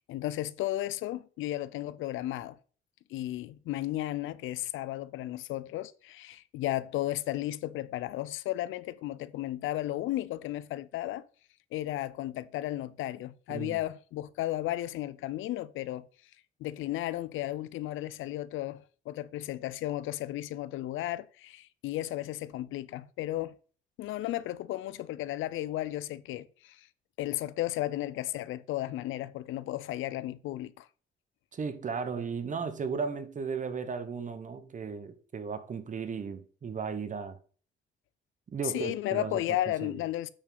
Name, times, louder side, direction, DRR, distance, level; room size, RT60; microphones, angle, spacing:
voice 1, 0.1-2.5 3.1-11.3 11.7-16.1 16.6-23.6 24.0-26.9 27.2-30.9 38.6-40.3, left 14 dB, 80° left, 0.5 m, -34 dB
voice 2, 31.5-37.4 38.5-39.4 39.8-39.9, right 5 dB, 40° right, 1.1 m, -35 dB
8.6 x 4.8 x 3.9 m
cardioid pair, 90°, 20 cm